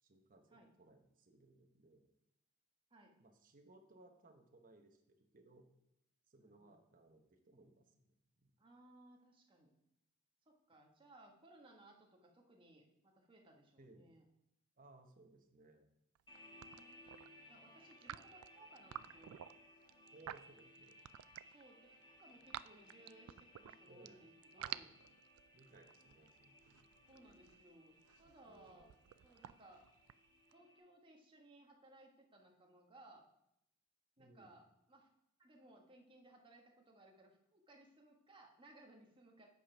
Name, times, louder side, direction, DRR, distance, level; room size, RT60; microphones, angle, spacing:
voice 1, 0.0-2.0 3.2-5.7 6.3-8.5 13.8-14.1 14.8-15.9 20.1-21.0 23.8-24.2 24.6-24.8 25.5-26.9 28.4-28.9 34.2-34.6, right 2 dB, 40° right, 4 dB, 1.0 m, -64 dB
voice 2, 6.4-6.8 8.6-9.7 10.5-14.3 16.6-19.4 21.5-24.9 27.1-28.9 29.2-29.8 30.5-33.2 34.2-35.1 35.4-39.5, right 1 dB, 25° right, 0 dB, 1.3 m, -63 dB
sound 1, 16.1-16.4 16.6-17.3 17.9-21.6 22.0-24.1 24.4-30.5, right 12 dB, 90° right, 0.3 m, -51 dB
sound 2, 16.3-30.8, left 1 dB, 25° left, 1.8 m, -63 dB
8.4 x 5.1 x 5.5 m, 0.81 s
head